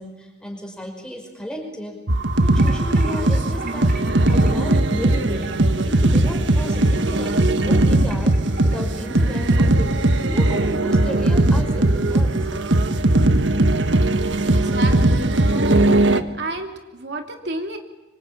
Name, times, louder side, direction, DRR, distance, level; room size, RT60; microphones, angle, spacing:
voice 1, 0.0-2.0 2.4-5.5 5.8-10.0 10.2-12.5, equal, 5° left, 2 dB, 5.4 m, -34 dB
sound 1, 2.1-16.2, right 1 dB, 85° right, 1.5 m, -18 dB
sound 2, 2.5-9.2, right 2 dB, 50° right, 4.2 m, -40 dB
voice 2, 14.4-15.8 16.4-17.8, right 2 dB, 70° right, 3 dB, 2.9 m, -31 dB
25.5 x 25.5 x 8.6 m, 1.0 s
head